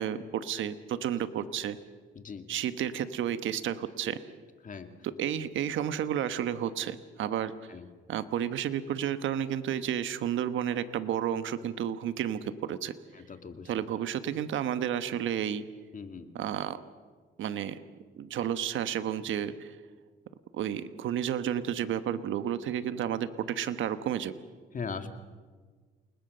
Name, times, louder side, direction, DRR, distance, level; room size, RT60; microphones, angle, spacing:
voice 1, 0.0-1.8 2.5-4.2 5.0-7.5 8.1-12.9 13.6-15.6 16.3-16.8 17.4-17.8 18.2-19.8 20.5-24.3, right 10 dB, 75° right, 11 dB, 1.2 m, -31 dB
voice 2, 13.1-13.7 15.9-16.3 24.7-25.1, left 5 dB, 40° left, 7 dB, 2.4 m, -39 dB
29.0 x 20.0 x 6.8 m, 1.4 s
cardioid pair, 90°, 20 cm